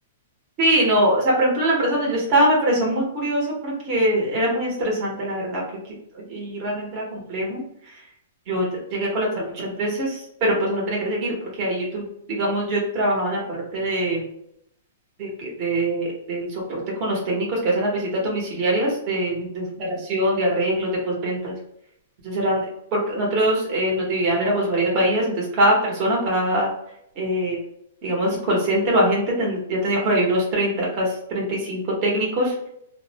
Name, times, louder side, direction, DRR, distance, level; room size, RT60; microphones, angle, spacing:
voice 1, 0.6-8.0 8.5-14.2 15.2-21.6 22.2-26.7 27.2-27.6 28.0-32.7, right 1 dB, 35° right, -2 dB, 0.8 m, -23 dB
2.4 x 2.0 x 2.7 m, 0.73 s
hypercardioid pair, 155°, 0 cm